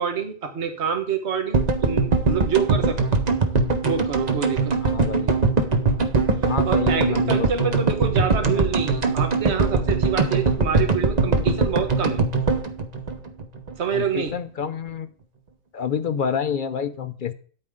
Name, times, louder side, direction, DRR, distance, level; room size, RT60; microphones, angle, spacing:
voice 1, 0.0-3.0 3.8-4.9 6.7-12.2 13.8-14.3, right 6 dB, 55° right, 5 dB, 1.7 m, -27 dB
sound 1, 1.5-13.8 14.0-14.1 14.3-14.4, right 3 dB, 35° right, 1.0 m, -22 dB
voice 2, 4.8-5.3 6.4-7.8 8.4-8.5 13.9-15.1 15.7-17.3, left 7 dB, 55° left, 12 dB, 0.6 m, -28 dB
9.7 x 8.7 x 3.7 m, 0.43 s
omnidirectional pair, 1.4 m